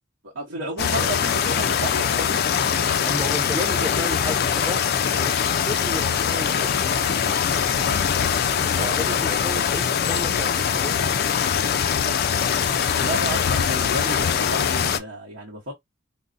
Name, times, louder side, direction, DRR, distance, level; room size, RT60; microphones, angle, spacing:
voice 1, 0.3-2.5 7.8-8.1 12.9-15.7, right 2 dB, 85° right, 1.0 m, -32 dB
sound 1, 0.8-15.0, left 7 dB, 50° left, 0.3 m, -22 dB
voice 2, 3.0-6.8 8.7-11.2, left 1 dB, 10° right, 0.5 m, -33 dB
3.8 x 2.0 x 2.5 m
head